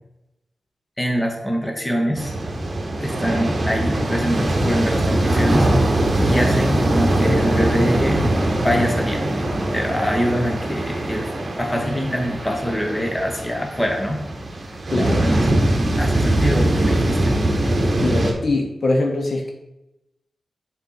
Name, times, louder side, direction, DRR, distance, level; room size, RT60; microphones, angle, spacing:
voice 1, 1.0-2.3 3.0-6.0 6.2-8.2 8.6-9.4 9.7-11.3 11.6-14.2 15.0-15.5 16.0-17.4, equal, 15° left, 1 dB, 1.2 m, -24 dB
sound 1, 2.2-18.3, right 1 dB, 40° right, 1.2 m, -21 dB
voice 2, 14.9-15.2 18.0-19.5, left 2 dB, 55° left, 2 dB, 1.0 m, -22 dB
6.7 x 4.4 x 4.1 m, 0.91 s
wide cardioid pair, 100°, 0 cm